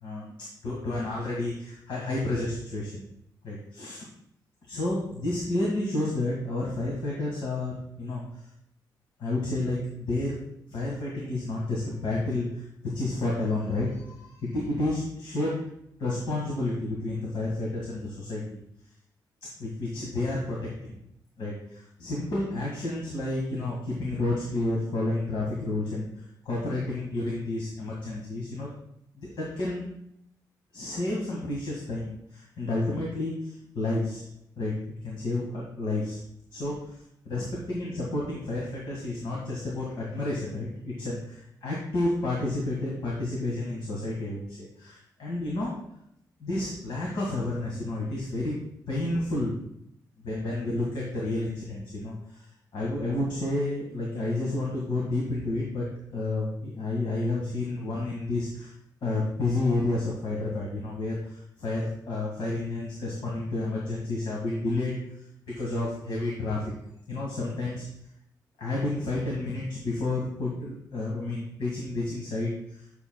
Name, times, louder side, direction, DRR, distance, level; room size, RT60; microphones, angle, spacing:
voice 1, 0.0-0.3 0.6-3.0 3.4-4.0 4.7-8.4 9.2-10.4 10.7-18.6 19.6-21.0 21.4-28.7 29.2-29.9 30.7-34.2 34.6-34.7 35.0-36.2 36.5-37.0 37.3-45.7 46.4-48.6 48.9-49.6 50.2-52.5 52.7-55.9 56.1-58.7 59.0-65.0 65.5-66.7 67.1-67.9 68.6-72.9, left 2 dB, 75° left, -4 dB, 1.7 m, -30 dB
10.0 x 6.8 x 2.3 m, 0.75 s
cardioid pair, 120°, 8 cm